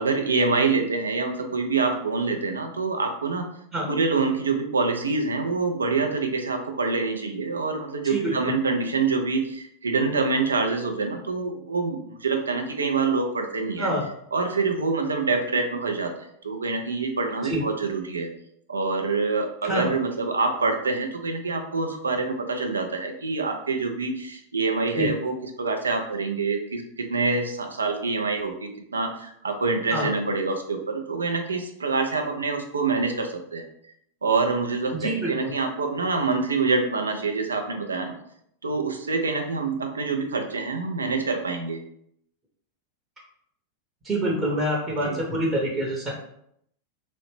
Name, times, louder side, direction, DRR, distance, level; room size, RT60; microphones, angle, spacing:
voice 1, 0.0-3.5 3.9-13.9 14.3-18.3 18.7-25.3 25.6-33.6 34.2-38.1 38.6-41.8 45.0-45.2, right 4 dB, 75° right, 4 dB, 0.4 m, -26 dB
voice 2, 8.0-8.5 13.8-14.0 17.4-17.6 19.6-19.9 24.9-25.1 29.9-30.1 34.9-35.5 44.0-46.1, right 1 dB, 20° right, -2 dB, 0.8 m, -26 dB
2.8 x 2.0 x 3.0 m, 0.72 s
figure-of-eight pair, 90°, 0 cm